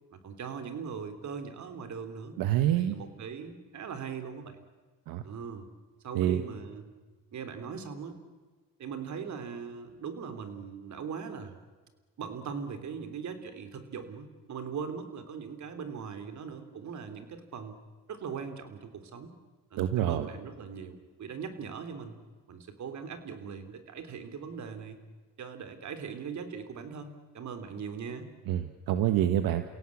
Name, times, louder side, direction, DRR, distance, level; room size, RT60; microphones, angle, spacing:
voice 1, 0.1-2.4 2.8-4.6 5.2-5.7 6.0-6.9 7.3-8.2 8.8-11.5 12.2-17.8 18.1-19.3 19.7-22.2 22.5-25.0 25.4-28.3, right 6 dB, 55° right, 8 dB, 3.4 m, -40 dB
voice 2, 2.4-2.9 5.1-5.2 6.1-6.4 19.8-20.3 28.5-29.6, right 12 dB, 80° right, 9 dB, 1.4 m, -26 dB
30.0 x 17.0 x 8.6 m, 1.4 s
cardioid pair, 100°, 35 cm